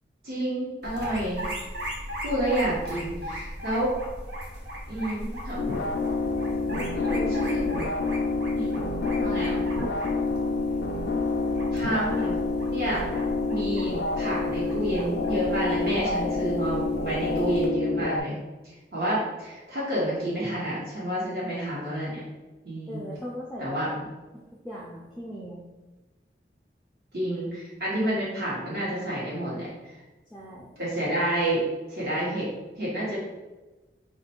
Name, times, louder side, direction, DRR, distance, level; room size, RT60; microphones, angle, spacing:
voice 1, 0.2-1.4 2.2-3.9 4.9-5.6 6.9-7.7 8.5-8.7 9.2-9.6 11.7-12.4 12.7-13.0 13.5-18.4 18.6-22.2 22.6-23.0 23.6-23.9 27.1-29.9 30.8-31.6 31.9-32.5 32.8-33.2, right 1 dB, 60° right, -8 dB, 1.2 m, -29 dB
sound 1, 0.8-17.7, equal, 85° right, 0.8 m, -38 dB
sound 2, 5.6-18.2, left 3 dB, 80° left, 0.4 m, -28 dB
voice 2, 6.7-7.4 8.8-9.9 22.9-24.0 24.6-25.6 30.3-30.7, equal, ahead, -5 dB, 0.4 m, -39 dB
3.1 x 2.5 x 4.4 m, 1.2 s
head